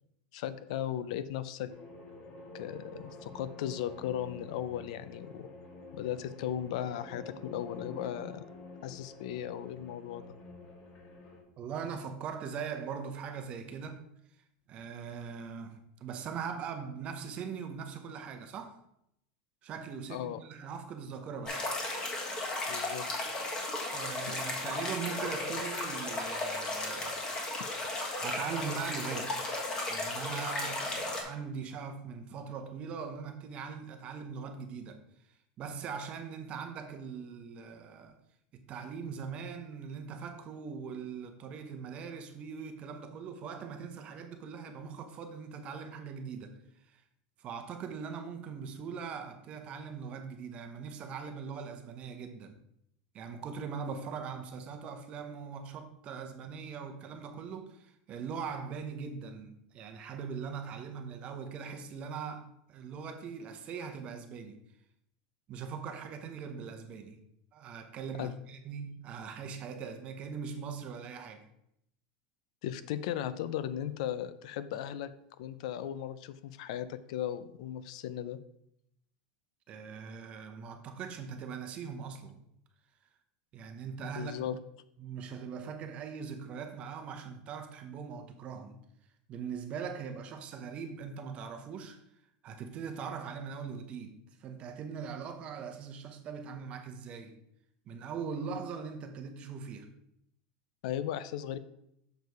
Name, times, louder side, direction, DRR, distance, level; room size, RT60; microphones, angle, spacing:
voice 1, 0.3-1.7 2.5-5.5 5.9-8.4 8.8-10.4 20.1-20.4 22.7-23.1 24.3-24.4 68.2-68.3 72.6-75.1 75.4-78.4 84.0-84.6 100.8-101.6, left 11 dB, 65° left, 0.5 m, -37 dB
sound 1, 1.7-11.4, left 2 dB, 35° left, 1.7 m, -48 dB
voice 2, 11.6-14.0 14.7-18.8 19.6-21.7 23.9-27.2 28.2-29.6 29.9-35.0 35.6-38.2 38.5-46.6 46.9-47.0 47.4-52.5 53.1-64.6 65.5-67.2 67.5-71.4 79.7-82.4 83.5-84.3 85.0-88.8 89.3-92.0 92.4-97.4 97.9-99.9, right 6 dB, 30° right, 0.8 m, -41 dB
sound 2, 21.5-31.2, left 2 dB, 20° left, 1.4 m, -35 dB
6.8 x 4.6 x 4.6 m
supercardioid pair, 160°, 4 cm